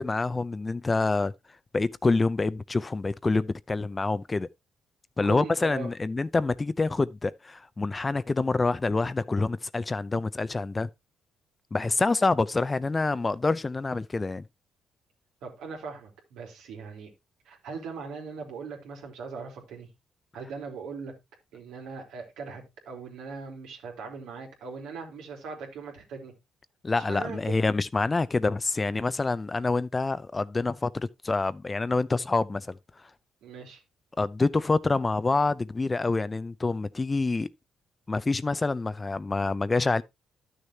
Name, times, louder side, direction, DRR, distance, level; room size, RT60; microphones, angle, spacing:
voice 1, 0.0-1.3 1.7-4.5 5.2-10.9 11.7-14.4 26.8-32.8 34.2-37.5 38.1-40.0, left 3 dB, 25° left, 0.5 m, -26 dB
voice 2, 5.2-5.9 15.4-17.1 17.4-19.9 20.3-21.1 21.5-26.3 26.9-27.5 33.4-33.8, right 5 dB, 85° right, 2.9 m, -40 dB
12.0 x 6.5 x 2.8 m
cardioid pair, 90°, 0 cm